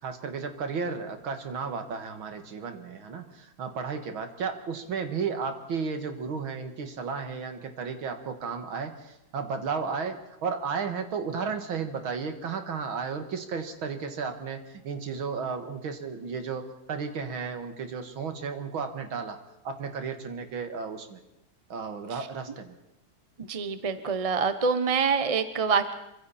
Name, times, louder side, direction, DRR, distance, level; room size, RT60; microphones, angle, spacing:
voice 1, 0.0-19.4 19.6-21.2 21.7-22.7, right 5 dB, 75° right, 7 dB, 2.6 m, -33 dB
voice 2, 23.5-25.9, right 5 dB, 35° right, 10 dB, 0.5 m, -26 dB
27.0 x 24.5 x 4.3 m, 0.89 s
omnidirectional pair, 2.3 m